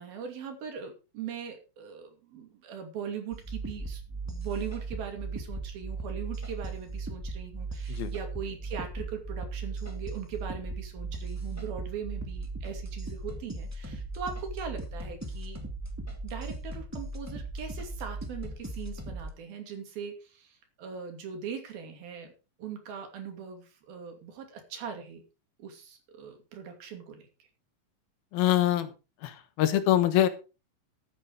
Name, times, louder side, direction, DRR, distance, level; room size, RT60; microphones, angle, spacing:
voice 1, 0.0-15.6 16.2-22.3 22.6-25.2 25.6-27.5, right 7 dB, 90° right, 5 dB, 4.5 m, -40 dB
sound 1, 3.3-19.3, right 3 dB, 10° right, 1.0 m, -37 dB
voice 2, 28.3-28.9 29.2-30.3, left 12 dB, 85° left, 11 dB, 3.1 m, -24 dB
13.0 x 8.7 x 4.8 m, 0.32 s
omnidirectional pair, 4.1 m